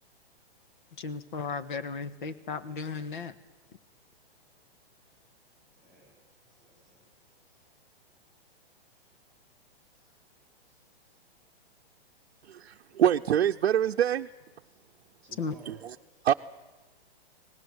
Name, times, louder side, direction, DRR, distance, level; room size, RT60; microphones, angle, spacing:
voice 1, 1.0-3.3 15.4-15.5, left 5 dB, 50° left, 12 dB, 1.6 m, -35 dB
voice 2, 5.0-5.3 5.7-7.6 8.9-9.0 9.9-10.1 10.6-10.8 11.0-11.1 12.1-12.4 14.6-14.7 15.2-16.2, right 2 dB, ahead, -3 dB, 4.4 m, -60 dB
voice 3, 12.5-14.3 15.7-15.9 16.2-16.3, right 10 dB, 85° right, 3 dB, 0.7 m, -25 dB
25.5 x 19.0 x 8.0 m, 1.1 s
hypercardioid pair, 180°, 31 cm